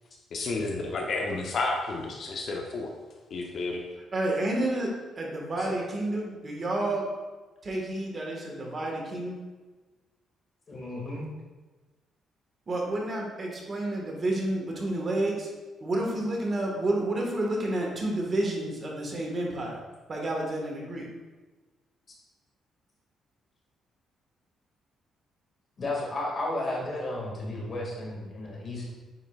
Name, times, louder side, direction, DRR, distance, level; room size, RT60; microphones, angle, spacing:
voice 1, 0.3-2.9 3.3-3.8, left 3 dB, 60° left, 1 dB, 0.8 m, -31 dB
voice 2, 4.1-4.9 5.2-7.1 7.6-9.4 12.7-15.5 15.8-19.8 20.1-21.1, right 1 dB, 40° right, -1 dB, 1.5 m, -30 dB
voice 3, 10.7-11.3 25.8-28.9, left 2 dB, 45° left, -2 dB, 2.0 m, -33 dB
9.2 x 4.5 x 2.4 m, 1.2 s
cardioid pair, 90°, 0 cm